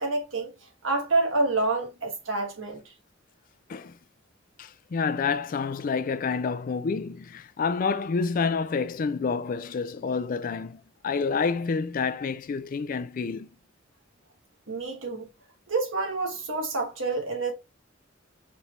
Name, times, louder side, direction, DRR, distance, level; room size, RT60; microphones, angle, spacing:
voice 1, 0.0-2.9 14.7-15.3 15.7-17.5, right 3 dB, 85° right, 1.4 m, -28 dB
voice 2, 4.6-13.5, left 5 dB, 45° left, 0.3 m, -28 dB
4.2 x 3.3 x 2.4 m
head